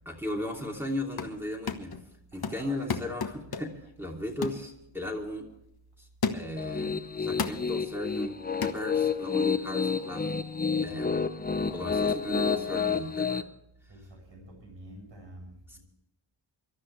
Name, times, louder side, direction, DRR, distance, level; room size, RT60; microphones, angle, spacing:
voice 1, 0.0-2.0 2.3-3.7 4.0-5.5 6.0-6.1 6.3-6.9 7.2-10.2 10.8-11.1 11.7-13.4 15.7-15.8, left 1 dB, 5° right, -1 dB, 2.8 m, -36 dB
sound 1, 0.9-1.4 1.7-2.0 2.4-3.9 4.4-4.7 5.2-5.3 6.2-6.7 7.4-7.7 8.6-8.8, left 5 dB, 45° left, 1.3 m, -33 dB
voice 2, 2.3-3.1 13.9-15.8, right 1 dB, 60° right, 1 dB, 7.7 m, -47 dB
Piano, 6.6-13.4, left 5 dB, 20° left, 0.6 m, -29 dB
24.5 x 13.0 x 3.3 m, 0.79 s
wide cardioid pair, 165°, 49 cm